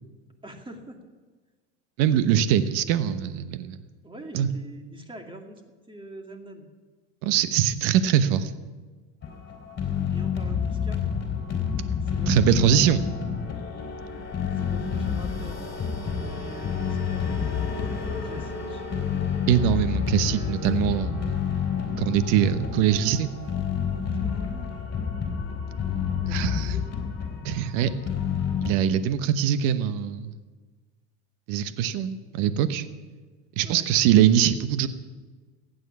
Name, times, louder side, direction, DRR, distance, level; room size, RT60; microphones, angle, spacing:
voice 1, 0.4-1.0 4.0-5.6 5.9-6.7 10.1-11.0 12.0-13.0 14.5-15.7 16.2-18.0 18.2-18.8 20.2-21.0 24.1-24.7 26.2-26.9 33.6-33.8, right 1 dB, 15° right, 3 dB, 2.4 m, -44 dB
voice 2, 2.0-3.8 4.3-4.5 7.2-8.5 12.3-13.0 19.5-21.1 22.0-23.3 26.3-26.7 27.4-27.9 28.6-30.3 31.5-32.8 33.6-34.9, right 10 dB, 65° right, 12 dB, 1.1 m, -22 dB
sound 1, 9.2-28.7, left 7 dB, 30° left, 3.7 m, -29 dB
15.5 x 9.3 x 7.2 m, 1.4 s
hypercardioid pair, 95°, 35 cm